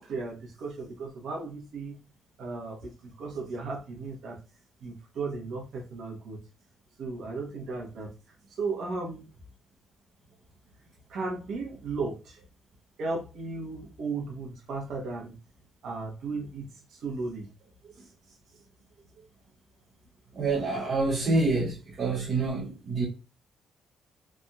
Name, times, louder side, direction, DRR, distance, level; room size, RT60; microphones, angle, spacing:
voice 1, 0.1-2.0 2.4-4.4 4.8-6.4 7.0-8.1 8.6-9.2 11.1-12.4 13.0-15.3 15.8-16.7 17.0-17.4 18.0-18.1, right 3 dB, 70° right, 1.1 m, -35 dB
voice 2, 20.3-23.1, right 3 dB, 55° right, 0.8 m, -27 dB
3.4 x 2.7 x 2.2 m
cardioid pair, 90°, 0 cm